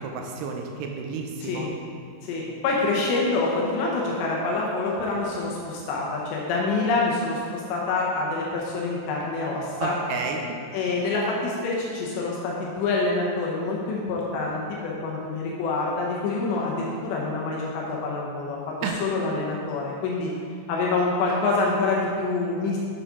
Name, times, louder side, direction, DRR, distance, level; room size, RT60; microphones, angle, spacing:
voice 1, 0.0-1.7 9.8-10.4 18.8-19.0, right 5 dB, 85° right, 2 dB, 2.7 m, -31 dB
voice 2, 2.2-9.9 10.7-20.3 20.7-22.8, left 3 dB, 80° left, -3 dB, 3.1 m, -26 dB
8.4 x 7.3 x 3.6 m, 2.2 s
omnidirectional pair, 5.1 m